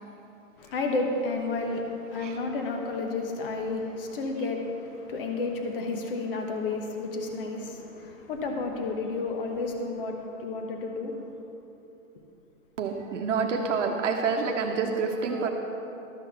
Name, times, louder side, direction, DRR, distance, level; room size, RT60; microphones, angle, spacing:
voice 1, 0.6-11.3, left 3 dB, 40° left, 3 dB, 1.2 m, -31 dB
voice 2, 12.8-15.5, right 5 dB, 55° right, 1 dB, 1.1 m, -27 dB
13.0 x 6.3 x 7.0 m, 2.9 s
hypercardioid pair, 170°, 43 cm